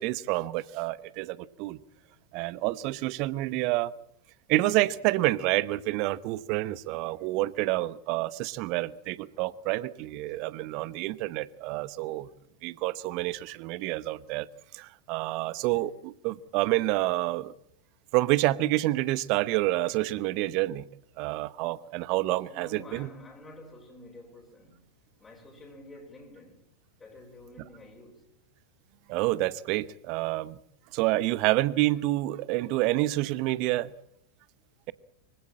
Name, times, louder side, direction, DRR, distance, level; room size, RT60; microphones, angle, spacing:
voice 1, 0.0-1.8 2.3-3.9 4.5-12.3 12.6-14.5 14.7-17.5 18.1-20.9 21.2-23.1 29.1-30.6 30.9-33.9, right 18 dB, 45° right, 0.9 m, -28 dB
voice 2, 22.4-24.8 25.2-26.6 27.0-28.3, left 1 dB, 15° left, 3.8 m, -49 dB
24.5 x 16.5 x 8.7 m
figure-of-eight pair, 90°, 0 cm